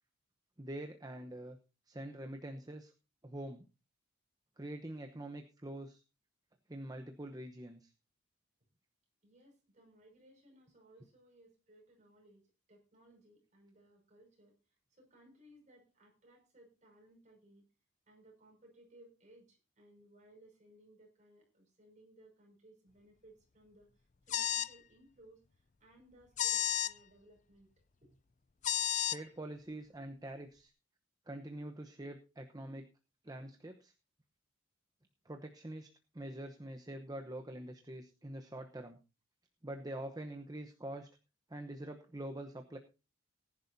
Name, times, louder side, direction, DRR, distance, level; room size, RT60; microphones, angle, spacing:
voice 1, 0.6-1.6 1.9-2.9 3.2-3.6 4.6-6.0 6.7-7.9 29.0-30.7 31.3-32.9 33.2-33.9 35.2-35.9 36.1-39.0 39.6-41.1 41.5-42.8, right 1 dB, 20° right, 5 dB, 0.9 m, -45 dB
voice 2, 9.2-12.4 12.7-14.6 14.9-17.6 18.1-27.7 28.0-28.1, right 1 dB, 40° right, 0 dB, 5.8 m, -62 dB
sound 1, 24.3-24.7 26.4-26.9 28.6-29.2, left 10 dB, 40° left, 0.5 m, -32 dB
19.5 x 10.5 x 2.7 m, 0.30 s
head